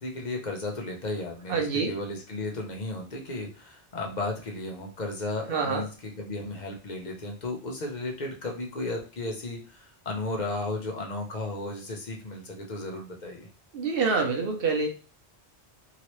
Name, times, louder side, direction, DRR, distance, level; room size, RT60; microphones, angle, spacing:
voice 1, 0.0-13.5, left 2 dB, 45° left, 1 dB, 0.8 m, -34 dB
voice 2, 1.5-1.9 5.5-5.8 13.7-14.9, right 4 dB, 60° right, 3 dB, 0.8 m, -26 dB
2.9 x 2.8 x 3.0 m, 0.34 s
omnidirectional pair, 1.2 m